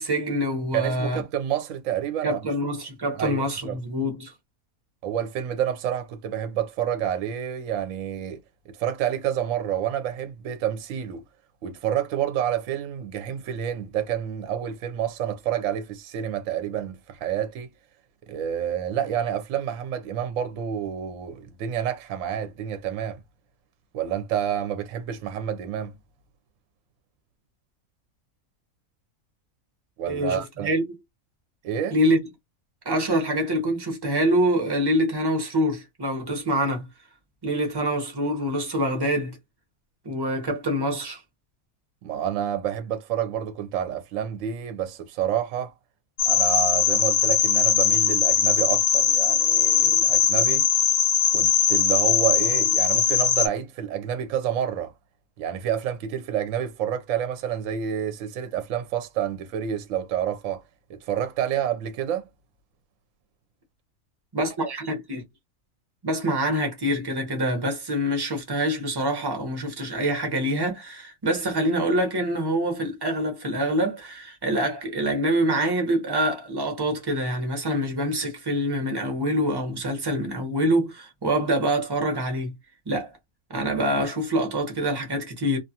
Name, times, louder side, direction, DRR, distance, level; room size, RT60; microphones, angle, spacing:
voice 1, 0.0-1.2 2.2-4.3 30.1-31.0 31.9-32.2 32.8-36.9 37.4-39.4 40.0-41.2 64.3-65.2 66.0-82.5 82.9-83.1 83.5-85.6, equal, 25° right, 0.6 m, -25 dB
voice 2, 0.7-2.4 3.2-3.8 5.0-8.4 8.8-11.2 11.6-17.7 18.3-23.2 23.9-25.9 30.0-30.7 31.6-31.9 42.0-45.7 46.3-50.7 51.3-54.9 55.4-60.6 60.9-62.3, right 9 dB, 70° right, 0.9 m, -28 dB
sound 1, 46.2-53.5, left 8 dB, 75° left, 1.0 m, -20 dB
2.4 x 2.4 x 2.7 m
omnidirectional pair, 1.5 m